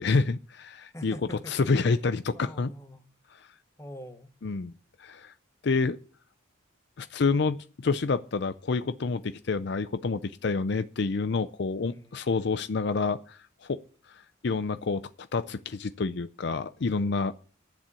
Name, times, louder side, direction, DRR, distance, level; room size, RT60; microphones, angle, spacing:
voice 1, 0.0-2.7 4.4-4.7 5.0-5.3 5.6-6.0 7.0-13.8 14.1-17.3, left 4 dB, 55° left, 0.5 m, -28 dB
voice 2, 0.9-2.0 2.3-3.1 3.8-4.3 11.9-12.3, equal, 15° left, 1.2 m, -44 dB
11.5 x 7.4 x 8.3 m
head